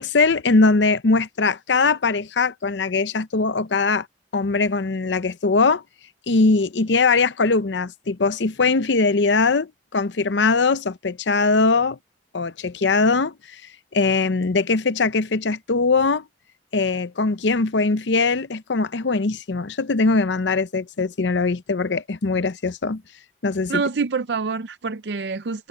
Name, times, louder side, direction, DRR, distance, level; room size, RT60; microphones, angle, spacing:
voice 1, 0.0-4.1 4.3-5.8 6.3-12.0 12.3-13.6 13.9-16.2 16.7-23.0 23.4-23.8, left 3 dB, 70° left, 0.7 m, -21 dB
voice 2, 23.7-25.7, right 5 dB, 65° right, 0.5 m, -26 dB
head